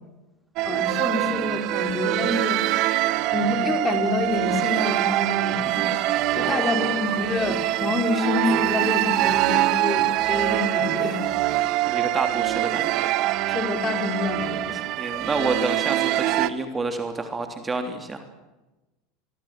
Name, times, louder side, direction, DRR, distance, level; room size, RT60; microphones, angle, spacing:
voice 1, 0.6-2.6 3.3-5.9 6.4-11.2 13.5-14.8, left 3 dB, 25° left, 5 dB, 4.7 m, -27 dB
sound 1, 0.6-16.5, right 15 dB, 55° right, 1.4 m, -24 dB
voice 2, 6.4-7.0 11.8-13.1 14.7-18.2, right 3 dB, 20° right, 6 dB, 3.3 m, -29 dB
24.5 x 23.0 x 7.6 m, 1.1 s
hypercardioid pair, 90°, 0 cm